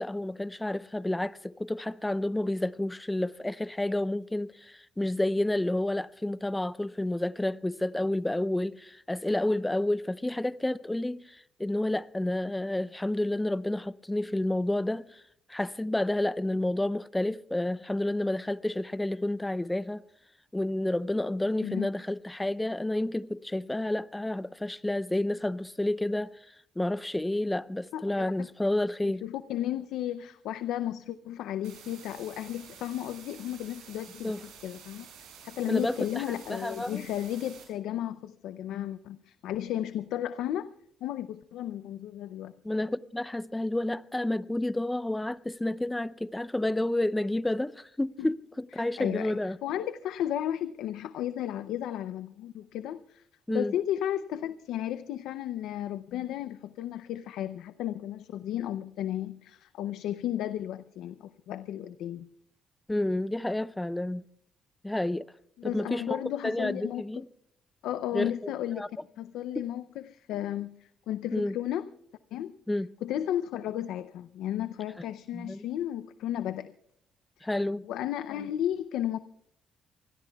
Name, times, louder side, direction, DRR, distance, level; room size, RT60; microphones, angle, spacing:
voice 1, 0.0-15.2 15.5-20.0 20.5-26.3 26.8-29.2 34.2-34.4 35.7-37.1 42.6-49.6 53.5-53.7 62.9-64.2 64.8-65.3 65.6-67.3 68.1-68.5 68.8-68.9 69.6-69.7 71.3-71.5 72.7-72.9 75.3-75.6 77.4-77.9, left 1 dB, 10° left, 0.5 m, -30 dB
voice 2, 27.9-28.5 29.0-35.1 35.4-40.7 41.0-42.5 48.2-48.3 48.8-53.2 53.5-62.3 65.6-67.0 67.8-68.9 69.2-71.9 72.3-72.5 73.0-76.7 77.4-77.5 77.9-79.2, left 11 dB, 85° left, 0.5 m, -34 dB
sound 1, 31.6-37.6, right 7 dB, 90° right, 7.0 m, -50 dB
26.5 x 20.5 x 2.3 m
cardioid pair, 90°, 0 cm